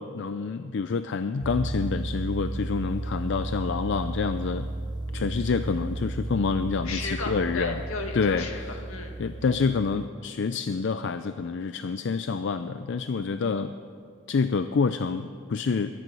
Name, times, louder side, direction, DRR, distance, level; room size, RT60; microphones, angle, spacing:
voice 1, 0.0-4.7 5.1-7.8 8.1-8.5 9.2-13.7 14.3-15.9, left 4 dB, 55° left, 11 dB, 0.4 m, -27 dB
sound 1, 1.4-10.1, right 2 dB, 20° right, 0.5 m, -34 dB
voice 2, 6.8-9.2, left 3 dB, 75° left, 3 dB, 2.0 m, -35 dB
21.5 x 11.0 x 5.5 m, 2.4 s
head